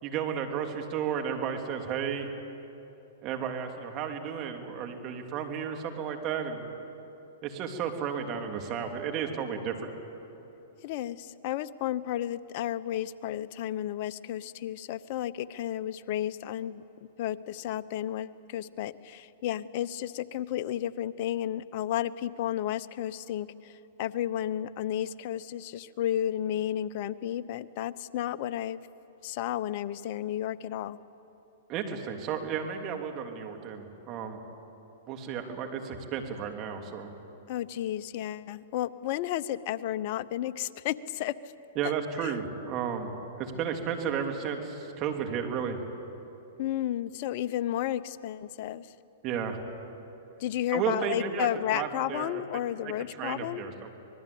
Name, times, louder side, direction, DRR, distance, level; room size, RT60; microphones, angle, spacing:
voice 1, 0.0-2.3 3.2-6.7 7.4-9.9 31.7-34.4 35.1-37.1 41.7-43.1 43.4-45.8 49.2-49.6 50.7-52.3 53.2-54.0, right 7 dB, 35° right, 4 dB, 3.0 m, -33 dB
voice 2, 10.8-16.8 17.2-28.8 29.2-31.0 37.5-41.3 42.2-42.3 46.6-48.9 50.4-53.6, left 12 dB, 50° left, 15 dB, 0.8 m, -32 dB
26.0 x 20.0 x 8.6 m, 3.0 s
hypercardioid pair, 120°, 0 cm